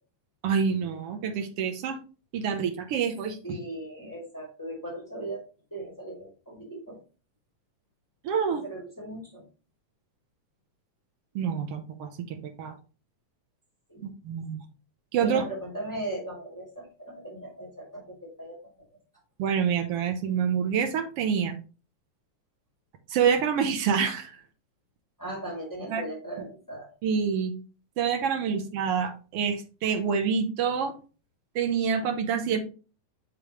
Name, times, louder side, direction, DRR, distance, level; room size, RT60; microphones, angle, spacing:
voice 1, 0.4-2.0 2.3-3.4 8.2-8.6 11.3-12.7 14.0-14.7 15.1-15.4 19.4-21.6 23.1-24.3 25.9-26.0 27.0-27.5 28.0-30.9 31.5-32.6, right 7 dB, 70° right, 5 dB, 1.4 m, -27 dB
voice 2, 3.4-7.0 8.5-9.4 13.9-14.0 15.2-18.6 25.2-26.9 28.5-28.6, right 1 dB, 5° left, -4 dB, 2.5 m, -38 dB
6.9 x 5.3 x 3.0 m, 0.35 s
omnidirectional pair, 3.6 m